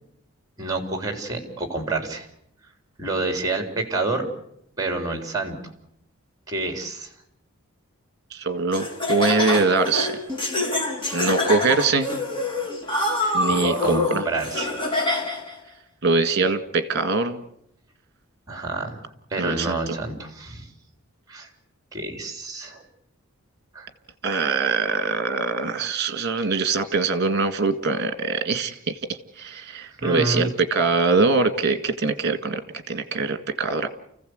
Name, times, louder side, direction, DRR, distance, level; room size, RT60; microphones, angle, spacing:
voice 1, 0.6-2.3 3.0-4.3 4.8-5.6 6.5-7.1 13.2-14.9 18.5-19.0 19.3-20.7 21.3-21.5 21.9-22.8 23.7-23.9 30.0-30.5, right 2 dB, 15° right, 5 dB, 3.7 m, -28 dB
voice 2, 8.3-10.2 11.1-12.1 13.3-14.2 16.0-17.4 19.4-20.0 24.2-32.6 32.9-33.9, right 4 dB, 50° right, 9 dB, 1.9 m, -23 dB
Laughter, 8.7-15.5, left 2 dB, 25° left, 3.4 m, -26 dB
29.5 x 15.5 x 7.9 m, 0.76 s
head